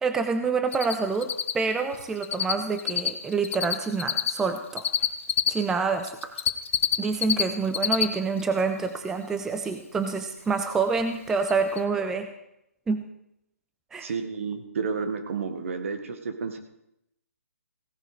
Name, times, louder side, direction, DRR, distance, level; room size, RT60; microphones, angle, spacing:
voice 1, 0.0-4.9 5.5-6.3 7.0-12.3 12.9-13.0 13.9-14.1, right 4 dB, 5° right, 8 dB, 0.4 m, -27 dB
Cricket, 0.7-0.9 1.2-2.5 2.8-5.5 6.0-7.4 7.7-8.0 8.4-8.5 11.0-11.1 11.5-11.6 11.8-11.9, left 8 dB, 50° left, 1.0 m, -25 dB
voice 2, 14.0-16.6, right 5 dB, 55° right, 7 dB, 1.8 m, -31 dB
16.5 x 9.4 x 4.9 m, 0.81 s
hypercardioid pair, 155°, 8 cm